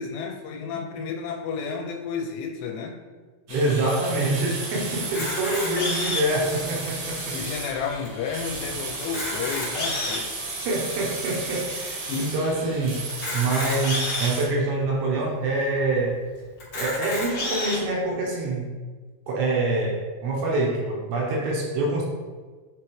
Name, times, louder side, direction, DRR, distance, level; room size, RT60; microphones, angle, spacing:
voice 1, 0.0-3.0 3.5-3.9 5.2-5.3 7.3-10.3 12.1-12.3, left 5 dB, 90° left, 0 dB, 3.0 m, -32 dB
sound 1, 3.5-14.4, right 3 dB, 65° right, 1.9 m, -34 dB
voice 2, 3.5-7.4 10.1-10.2 10.7-16.2 16.7-18.7 19.3-22.0, right 2 dB, 80° right, -3 dB, 3.1 m, -26 dB
Camera, 5.0-6.4 7.1-7.2 7.4-7.5 8.0-8.1 8.9-10.3 11.0-11.1 13.1-14.3 15.0-15.1 15.4-15.5 16.6-17.8, left 2 dB, 60° left, 1.3 m, -29 dB
9.3 x 3.4 x 3.1 m, 1.4 s
omnidirectional pair, 5.3 m